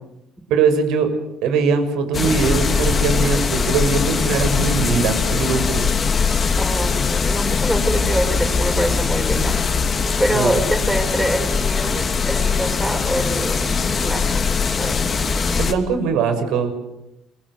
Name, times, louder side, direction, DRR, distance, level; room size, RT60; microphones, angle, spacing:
voice 1, 0.5-1.1 1.4-5.9 10.3-10.5 15.6-16.7, right 5 dB, 80° right, 8 dB, 6.0 m, -20 dB
sound 1, 2.1-15.7, left 5 dB, 30° left, 2.7 m, -21 dB
voice 2, 6.6-9.6 10.2-13.7 14.0-14.4 14.8-15.1, right 1 dB, 5° right, 4 dB, 5.6 m, -25 dB
29.5 x 23.0 x 8.1 m, 0.88 s
cardioid pair, 130°, 0 cm